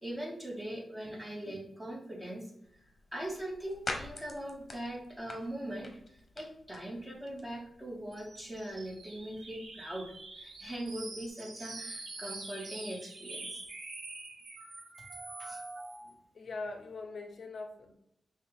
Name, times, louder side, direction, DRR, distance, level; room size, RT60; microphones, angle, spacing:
voice 1, 0.0-2.5 3.1-13.6 15.4-15.6 16.0-16.1, right 1 dB, 10° right, -1 dB, 1.5 m, -41 dB
sound 1, 2.6-11.3, left 2 dB, 40° left, 1.0 m, -48 dB
sound 2, 8.1-16.1, right 3 dB, 75° right, 1.1 m, -45 dB
voice 2, 16.3-17.9, left 3 dB, 65° left, 5 dB, 0.6 m, -41 dB
5.5 x 2.4 x 3.5 m, 0.76 s
cardioid pair, 75°, 0 cm